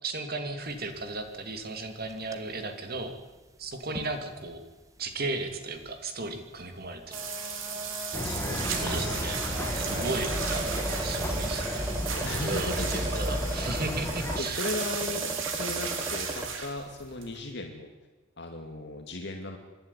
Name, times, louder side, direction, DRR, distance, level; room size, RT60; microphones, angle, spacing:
voice 1, 0.0-3.1 3.6-4.6 5.0-7.2 8.7-9.4 9.7-14.6, right 3 dB, 50° right, 6 dB, 2.8 m, -35 dB
sound 1, 0.6-1.1 1.4-1.5 2.0-2.4 3.0-3.1 3.9-4.1 4.5-4.6 5.7-5.9 7.0-16.6, right 1 dB, 15° right, 1.6 m, -38 dB
sound 2, 7.1-17.5, right 6 dB, 85° right, 3.6 m, -35 dB
sound 3, 8.1-14.4, left 1 dB, 15° left, 2.3 m, -33 dB
voice 2, 8.2-9.3 9.9-10.1 12.2-12.9 14.4-15.3 15.5-17.9 18.4-19.6, left 2 dB, 60° left, 3 dB, 2.4 m, -37 dB
26.0 x 11.5 x 9.9 m, 1.2 s
head